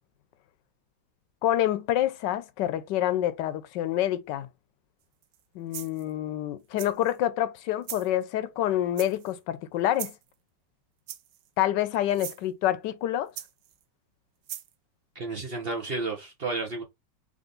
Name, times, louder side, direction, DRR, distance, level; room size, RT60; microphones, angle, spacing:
voice 1, 1.4-4.5 5.5-10.2 11.6-13.3, left 12 dB, 80° left, 1.3 m, -27 dB
sound 1, 5.2-5.4 5.7-6.1 6.8-7.2 7.8-8.1 9.0-9.4 9.9-10.3 11.1-11.5 12.1-12.4 13.4-13.8 14.5-14.7, right 12 dB, 85° right, 1.3 m, -39 dB
voice 2, 15.1-16.8, right 3 dB, 45° right, 0.9 m, -32 dB
3.6 x 3.4 x 3.8 m
omnidirectional pair, 1.9 m